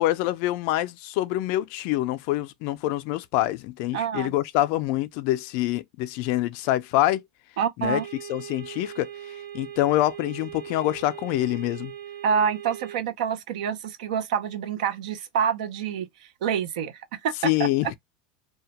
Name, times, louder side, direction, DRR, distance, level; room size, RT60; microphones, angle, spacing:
voice 1, 0.0-7.2 7.8-8.0 8.3-9.1 9.5-11.9 17.4-17.9, left 15 dB, 50° left, 0.4 m, -25 dB
voice 2, 3.9-4.3 7.6-8.0 12.2-16.1 16.4-17.9, right 7 dB, 90° right, 0.5 m, -27 dB
sound 1, 7.8-13.0, right 10 dB, 60° right, 0.7 m, -40 dB
2.2 x 2.1 x 2.8 m
supercardioid pair, 160°, 4 cm